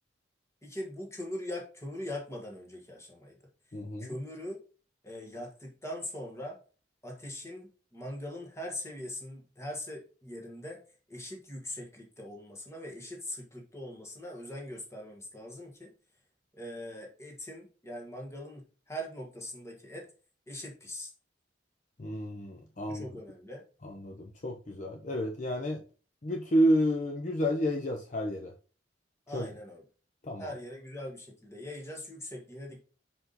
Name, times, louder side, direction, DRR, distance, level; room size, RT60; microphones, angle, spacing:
voice 1, 0.6-3.4 4.0-4.6 5.0-6.6 7.0-10.8 11.1-15.9 16.5-20.1 20.5-21.1 22.9-23.6 29.3-29.8 30.4-32.8, left 1 dB, 15° left, 0 dB, 1.5 m, -41 dB
voice 2, 3.7-4.1 22.0-23.1 23.8-25.8 26.2-28.5 29.3-29.5 30.2-30.5, equal, 40° left, 1 dB, 0.7 m, -30 dB
5.4 x 4.8 x 4.0 m, 0.38 s
head